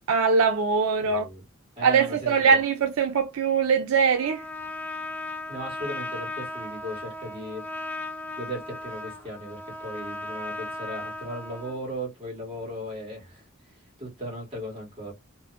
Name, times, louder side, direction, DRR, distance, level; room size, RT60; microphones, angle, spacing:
voice 1, 0.1-1.3 1.8-4.4, right 5 dB, 85° right, 0.4 m, -22 dB
voice 2, 1.0-1.4 1.8-2.6 5.5-7.6 8.4-15.1, equal, 25° right, 1.5 m, -37 dB
Trumpet, 4.1-11.8, left 2 dB, 10° left, 0.5 m, -36 dB
2.8 x 2.0 x 2.3 m
head